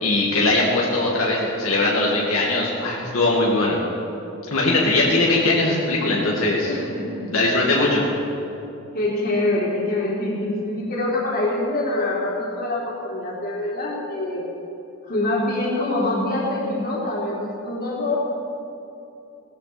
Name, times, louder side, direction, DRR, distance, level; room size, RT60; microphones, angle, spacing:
voice 1, 0.0-3.8 4.5-6.7 7.3-8.0, left 2 dB, 75° left, -4 dB, 2.1 m, -20 dB
voice 2, 6.7-7.3 8.9-14.5 15.1-18.2, left 2 dB, 45° left, -4 dB, 3.3 m, -25 dB
18.5 x 14.0 x 4.3 m, 2.9 s
head